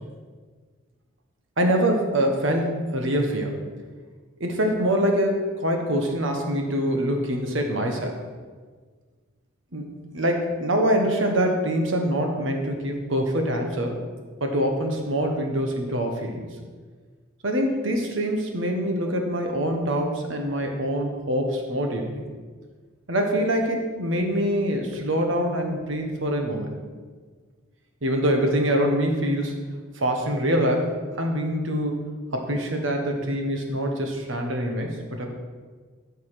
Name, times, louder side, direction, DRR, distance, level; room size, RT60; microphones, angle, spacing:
voice 1, 1.6-3.6 4.4-8.2 9.7-14.0 14.4-16.5 17.4-22.2 23.1-26.8 28.0-29.5 29.9-35.3, equal, 75° right, 3 dB, 1.5 m, -25 dB
13.0 x 5.5 x 5.1 m, 1.5 s
head